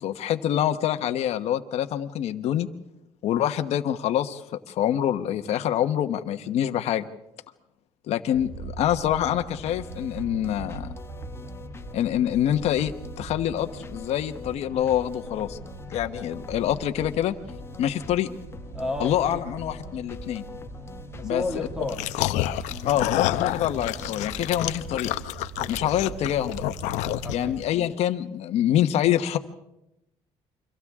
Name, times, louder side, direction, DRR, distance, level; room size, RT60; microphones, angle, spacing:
voice 1, 0.0-2.7 3.2-4.4 4.7-7.0 8.1-10.9 11.9-12.9 13.2-15.6 15.9-17.3 17.8-18.3 19.0-20.4 21.2-21.4 22.9-25.1 25.7-26.6 27.3-29.4, left 11 dB, 65° left, 1.2 m, -25 dB
sound 1, 8.3-27.7, right 5 dB, 60° right, 2.5 m, -42 dB
sound 2, 9.2-24.9, left 4 dB, 20° left, 0.9 m, -43 dB
voice 2, 18.7-19.4 21.2-22.0 25.6-25.8 27.2-27.6, left 2 dB, 5° right, 2.3 m, -32 dB
sound 3, 21.9-27.6, left 15 dB, 85° left, 0.8 m, -29 dB
29.5 x 24.5 x 3.7 m
cardioid pair, 125°, 12 cm